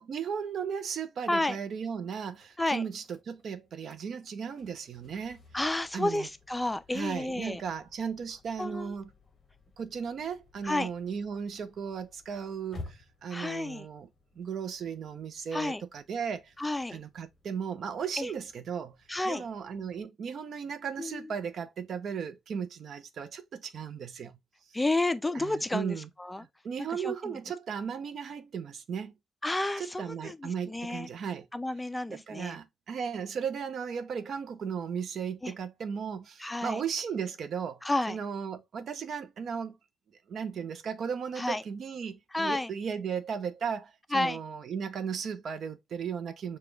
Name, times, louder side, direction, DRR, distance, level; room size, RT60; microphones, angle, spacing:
voice 1, 0.0-5.4 5.9-6.3 6.9-9.1 9.8-14.1 14.4-16.5 16.9-19.0 19.2-24.4 25.3-26.1 26.4-29.1 29.8-31.5 32.1-39.8 40.3-46.6, right 7 dB, 60° right, 0.6 m, -36 dB
sound 1, 2.1-20.0, left 3 dB, 35° left, 0.9 m, -55 dB
voice 2, 5.5-7.6 8.6-8.9 10.6-10.9 13.3-13.9 15.5-15.8 16.6-17.0 18.2-18.3 19.1-19.5 21.0-21.3 24.7-26.4 26.9-27.1 29.4-31.1 31.5-32.6 35.4-35.5 36.4-36.8 37.8-38.2 41.4-41.6 42.3-42.7 44.1-44.4, left 2 dB, 15° left, 0.4 m, -31 dB
5.0 x 2.3 x 3.2 m
cardioid pair, 90°, 0 cm